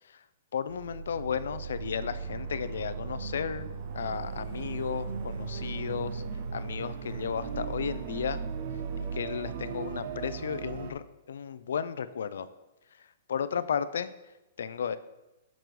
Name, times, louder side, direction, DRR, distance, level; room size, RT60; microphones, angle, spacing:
voice 1, 0.5-3.7 3.9-6.2 6.5-8.4 9.0-12.5 13.3-14.1 14.6-15.0, left 7 dB, 80° left, 14 dB, 0.4 m, -34 dB
sound 1, 0.7-10.9, right 5 dB, 40° right, 0.5 m, -37 dB
6.0 x 5.2 x 4.6 m, 1.0 s
hypercardioid pair, 170°, 0 cm